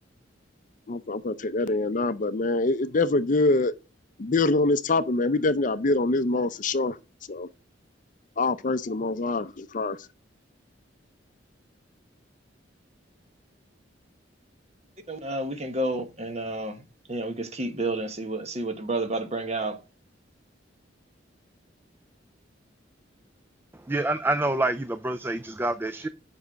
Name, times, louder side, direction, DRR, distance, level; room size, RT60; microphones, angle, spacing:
voice 1, 0.9-3.7 4.2-7.0 7.3-7.5 8.4-10.0, left 2 dB, 45° left, 0.5 m, -25 dB
voice 2, 15.1-16.8 17.1-19.8, right 2 dB, 35° right, 1.2 m, -30 dB
voice 3, 23.9-26.1, right 2 dB, 10° right, 0.4 m, -27 dB
7.2 x 5.6 x 6.3 m
head